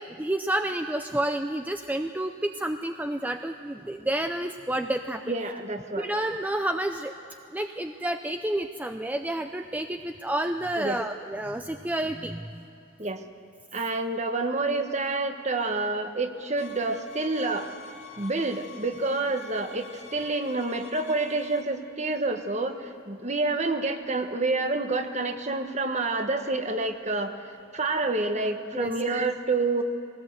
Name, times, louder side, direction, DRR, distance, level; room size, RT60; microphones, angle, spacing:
voice 1, 0.0-5.2 5.9-7.1 7.5-12.6 28.7-28.9, right 1 dB, 10° right, 7 dB, 0.5 m, -30 dB
voice 2, 5.3-6.1 10.8-11.0 13.0-13.2 13.7-17.7 18.2-27.4 27.7-29.8, right 3 dB, 35° right, 7 dB, 1.2 m, -28 dB
sound 1, 16.6-21.6, left 5 dB, 65° left, 2.1 m, -47 dB
21.5 x 18.0 x 8.1 m, 2.8 s
head